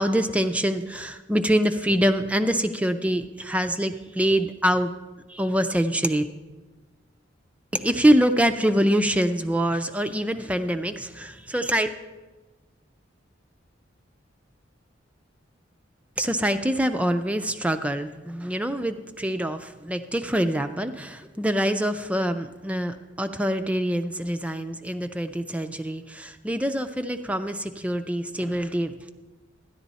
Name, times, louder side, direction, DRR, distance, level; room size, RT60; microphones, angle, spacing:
voice 1, 0.0-4.9 5.3-6.2 7.7-11.9 16.2-29.1, equal, 5° right, 8 dB, 0.4 m, -25 dB
12.5 x 10.5 x 4.1 m, 1.2 s
head